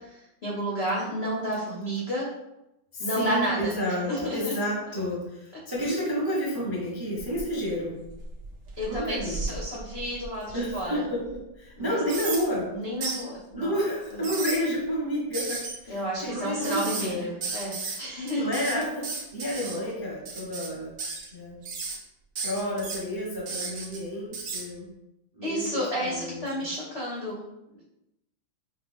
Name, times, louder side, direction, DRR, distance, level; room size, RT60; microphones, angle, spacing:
voice 1, 0.4-2.3 3.0-3.8 4.1-4.6 8.8-11.0 11.8-12.0 12.7-13.7 14.1-14.2 15.9-18.6 25.4-27.4, equal, 65° left, -5 dB, 0.6 m, -31 dB
voice 2, 2.9-8.0 8.8-9.4 10.5-12.8 13.5-17.3 18.4-20.9 21.3-21.6 22.4-24.9 25.3-26.7, equal, 25° right, -5 dB, 0.5 m, -30 dB
sound 1, 7.2-7.7 8.1-10.7 11.2-11.3 12.1-12.4 13.0-13.2 14.0-14.6 15.3-15.7 16.6-17.1 17.4-18.0 18.3-19.8 20.3-20.7 21.0-21.3 21.6-22.0 22.4-23.0 23.5-24.0 24.3-24.6, right 4 dB, 60° right, 0.8 m, -34 dB
5.6 x 2.3 x 3.5 m, 0.90 s
omnidirectional pair, 2.3 m